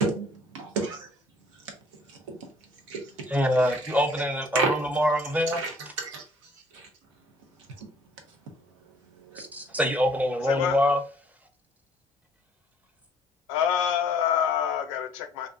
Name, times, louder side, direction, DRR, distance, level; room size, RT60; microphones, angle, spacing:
voice 1, 0.0-1.1 2.1-2.4 2.9-3.3 3.7-3.9 4.5-4.8 5.5-6.2 6.7-6.9 7.8-7.9 9.2-9.4, right 4 dB, 90° right, 0.7 m, -30 dB
voice 2, 3.3-5.6 9.4-11.0, equal, 10° right, 0.7 m, -25 dB
voice 3, 13.5-15.5, left 9 dB, 90° left, 0.4 m, -26 dB
2.5 x 2.2 x 2.5 m
hypercardioid pair, 60°, 16 cm